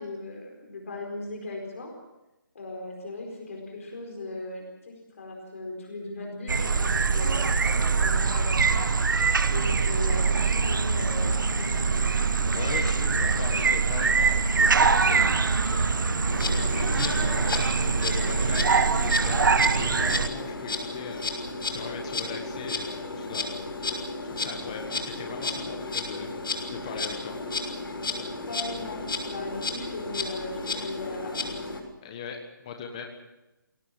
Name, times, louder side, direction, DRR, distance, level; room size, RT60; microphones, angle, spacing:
voice 1, 0.0-1.9 2.5-8.9 9.5-12.1 28.5-31.7, left 2 dB, 40° left, 1 dB, 4.6 m, -38 dB
sound 1, 6.5-20.3, right 5 dB, 65° right, 1.2 m, -24 dB
sound 2, 10.1-20.1, right 1 dB, 30° right, 2.2 m, -37 dB
voice 2, 12.5-21.3 21.7-26.3 26.7-27.3 32.0-33.1, left 6 dB, 15° left, 3 dB, 1.4 m, -39 dB
Insect, 16.3-31.8, left 3 dB, 85° left, 6.2 m, -33 dB
22.5 x 17.5 x 7.4 m, 0.97 s
hypercardioid pair, 180°, 11 cm